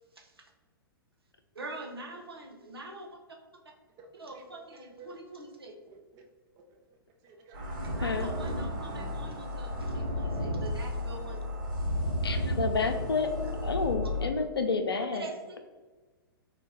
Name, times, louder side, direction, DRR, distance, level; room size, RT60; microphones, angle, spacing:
voice 1, 0.2-0.5 1.5-3.2 4.2-5.7 7.8-11.4 13.4-13.5 15.1-15.6, right 2 dB, 85° right, 1 dB, 0.7 m, -44 dB
voice 2, 4.0-5.1 5.8-6.2 6.6-6.8 7.2-8.2 14.3-14.8, right 3 dB, 30° right, 3 dB, 0.6 m, -53 dB
sound 1, 7.5-14.3, left 1 dB, 55° right, 1.2 m, -33 dB
voice 3, 8.0-8.3 12.2-13.3 13.6-15.3, left 4 dB, 85° left, 7 dB, 0.4 m, -30 dB
4.0 x 2.2 x 3.2 m, 1.3 s
figure-of-eight pair, 110°, 12 cm